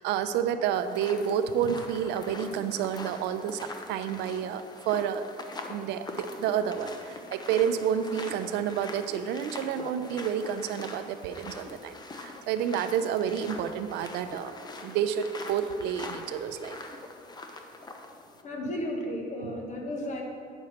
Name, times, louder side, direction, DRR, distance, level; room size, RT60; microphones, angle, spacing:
voice 1, 0.0-5.2 5.7-14.5 14.8-16.8 19.4-19.5, right 8 dB, 90° right, 10 dB, 0.5 m, -30 dB
sound 1, 0.7-18.4, left 2 dB, 25° left, 0.7 m, -43 dB
voice 2, 18.4-20.2, left 1 dB, 45° left, 0 dB, 1.6 m, -33 dB
8.8 x 6.5 x 4.3 m, 2.2 s
cardioid pair, 110°, 17 cm